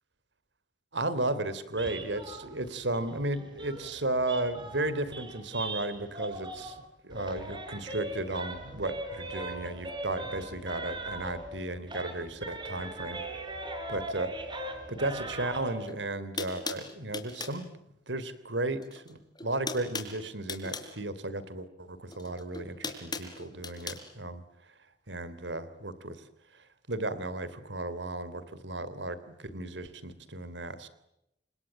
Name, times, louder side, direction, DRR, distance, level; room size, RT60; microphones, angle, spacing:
voice 1, 0.9-13.2 13.9-17.6 18.1-24.4 25.1-26.2 26.5-30.9, right 2 dB, 75° right, 15 dB, 3.3 m, -34 dB
sound 1, 1.7-6.8 7.1-11.6 11.9-15.8, right 1 dB, 25° right, 5.8 m, -40 dB
sound 2, 15.9-16.0 16.4-17.6 18.8-19.1 19.4-20.9 22.1-24.0, left 4 dB, 25° left, 4.4 m, -38 dB
29.5 x 26.5 x 7.4 m, 0.84 s
head